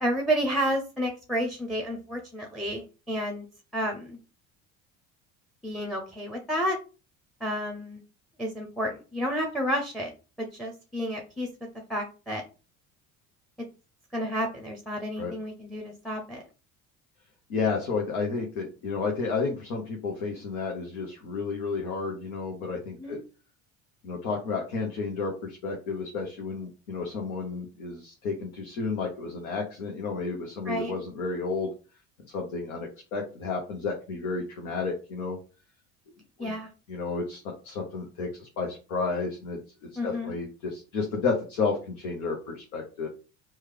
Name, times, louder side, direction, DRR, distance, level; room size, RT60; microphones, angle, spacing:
voice 1, 0.0-3.5 3.7-4.2 5.6-6.8 7.4-8.0 8.4-10.1 10.4-11.5 11.9-12.4 14.1-16.4 23.0-23.2 30.7-30.9 36.4-36.7 40.0-40.3, equal, ahead, 2 dB, 0.7 m, -30 dB
voice 2, 17.5-23.2 24.0-31.7 32.3-35.4 36.4-36.6 36.9-43.1, left 4 dB, 75° left, 0 dB, 0.9 m, -32 dB
3.1 x 2.3 x 3.4 m, 0.34 s
hypercardioid pair, 60°, 44 cm